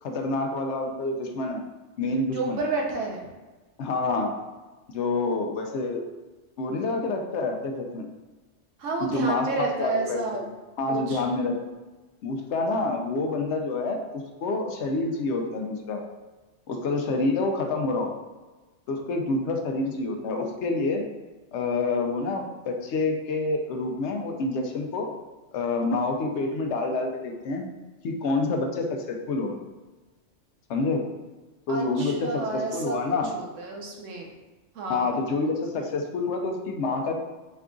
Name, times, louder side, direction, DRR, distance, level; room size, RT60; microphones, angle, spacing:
voice 1, 0.0-1.6 2.0-2.6 3.8-4.3 4.9-6.0 6.6-8.1 9.0-10.4 10.8-11.5 12.2-16.0 16.7-18.1 18.9-21.0 21.5-25.1 25.5-27.7 28.0-29.6 30.7-31.0 31.7-33.3 34.9-37.1, left 3 dB, 75° left, 3 dB, 0.9 m, -27 dB
voice 2, 2.3-3.2 8.8-10.4 10.9-11.2 31.7-34.3 34.7-35.1, right 3 dB, 90° right, -1 dB, 1.1 m, -31 dB
4.4 x 2.3 x 3.7 m, 1.2 s
omnidirectional pair, 1.2 m